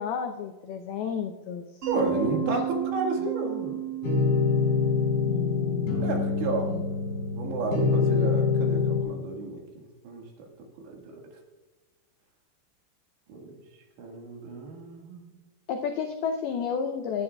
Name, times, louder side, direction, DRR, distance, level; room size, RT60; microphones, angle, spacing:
voice 1, 0.0-1.6 1.9-2.5 5.3-6.0 6.6-6.8 15.7-17.2, left 6 dB, 85° left, 4 dB, 2.2 m, -32 dB
Mallet percussion, 1.8-6.6, right 13 dB, 50° right, 6.2 m, -34 dB
voice 2, 1.9-3.8 6.0-6.7 7.3-10.2 10.8-11.2 13.3-13.5 14.0-15.2, right 3 dB, 75° right, 1 dB, 3.9 m, -32 dB
sound 1, 4.0-9.0, left 5 dB, 55° left, 5.6 m, -25 dB
19.5 x 11.5 x 2.3 m, 1.2 s
omnidirectional pair, 5.4 m